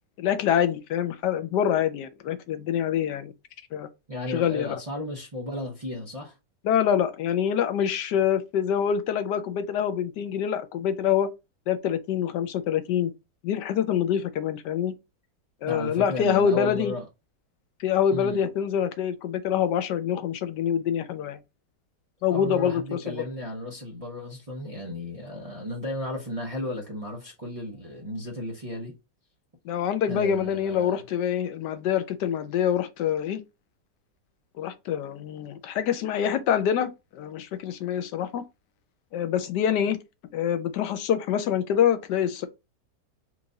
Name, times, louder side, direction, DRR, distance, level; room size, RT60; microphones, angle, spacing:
voice 1, 0.2-3.3 3.7-3.9 4.3-4.8 6.6-11.3 11.7-13.1 13.4-14.9 15.6-16.9 17.8-21.4 22.2-23.2 29.6-33.4 34.6-38.4 39.1-40.0 40.3-42.5, left 9 dB, 75° left, 1.2 m, -25 dB
voice 2, 4.1-6.4 15.7-17.0 18.1-18.4 22.3-28.9 30.1-31.0, left 1 dB, 30° right, 0.7 m, -34 dB
4.5 x 2.5 x 3.8 m
omnidirectional pair, 1.9 m